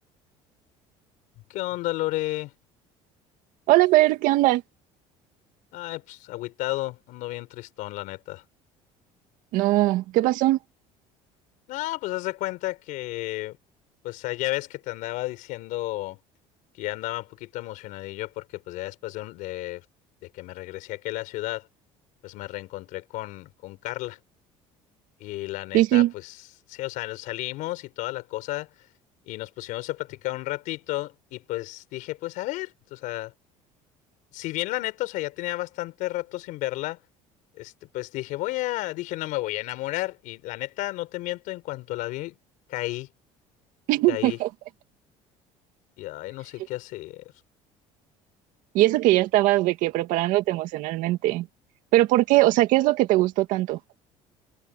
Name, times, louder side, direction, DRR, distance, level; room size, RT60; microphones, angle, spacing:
voice 1, 1.5-2.5 5.7-8.4 11.7-13.6 14.0-16.2 16.8-19.8 20.2-21.7 22.2-24.2 25.2-26.4 26.7-28.7 29.2-33.3 34.3-37.0 37.6-42.3 42.7-43.1 44.1-44.4 46.0-47.3, left 18 dB, 75° left, 4.4 m, -32 dB
voice 2, 3.7-4.6 9.5-10.6 25.7-26.1 43.9-44.5 48.7-51.5 51.9-53.8, right 17 dB, 75° right, 2.1 m, -20 dB
cardioid pair, 105°, 14 cm